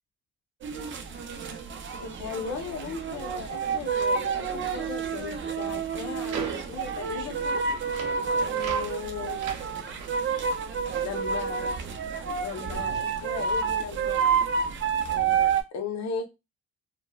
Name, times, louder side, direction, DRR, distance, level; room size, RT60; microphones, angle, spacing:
sound 1, 0.6-15.6, right 6 dB, 40° right, 0.5 m, -29 dB
voice 1, 2.0-7.6 8.4-9.4 9.7-9.8 10.9-11.9 12.4-14.4 15.1-16.3, left 5 dB, 65° left, 5 dB, 0.8 m, -37 dB
sound 2, 4.8-12.2 12.4-13.9, right 5 dB, 85° right, 0.7 m, -43 dB
3.0 x 2.1 x 2.3 m, 0.24 s
cardioid pair, 90°, 30 cm